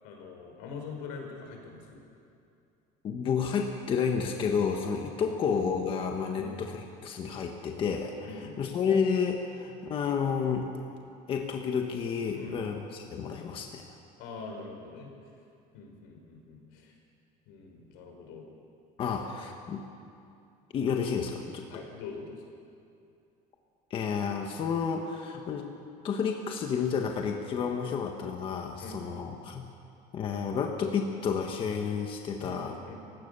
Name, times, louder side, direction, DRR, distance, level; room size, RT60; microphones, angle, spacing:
voice 1, 0.0-2.0 5.3-5.4 6.4-6.6 8.2-8.6 12.4-12.6 14.2-15.1 15.7-16.9 17.5-18.5 21.7-22.5 27.9-28.0 28.8-29.0 32.4-32.6 32.9-33.0, left 4 dB, 85° left, 2 dB, 5.4 m, -43 dB
voice 2, 3.0-10.7 11.3-13.8 19.0-19.9 20.7-21.6 23.9-25.7 26.0-29.6 30.1-32.8, left 6 dB, 35° left, 3 dB, 1.5 m, -30 dB
29.0 x 16.5 x 6.9 m, 2.5 s
cardioid pair, 170°, 16 cm